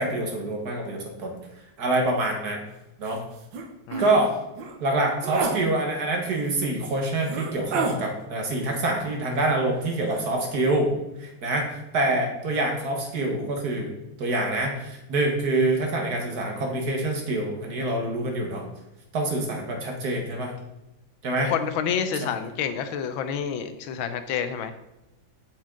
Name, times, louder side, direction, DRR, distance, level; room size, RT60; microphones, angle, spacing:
voice 1, 0.0-1.3 1.8-2.6 3.0-3.2 4.0-4.3 4.8-10.9 11.2-13.9 14.2-18.6 19.1-20.5 21.2-21.5, right 2 dB, 55° right, 2 dB, 1.7 m, -26 dB
sound 1, 3.1-3.2 3.5-3.7 3.9-4.1 4.6-4.7 5.2-5.6 6.5-6.6 7.2-8.0 9.3-9.8 10.1-10.3, right 4 dB, 70° right, 1.6 m, -29 dB
voice 2, 21.4-24.7, left 7 dB, 80° left, 9 dB, 1.5 m, -28 dB
7.4 x 7.3 x 3.8 m, 0.95 s
omnidirectional pair, 2.2 m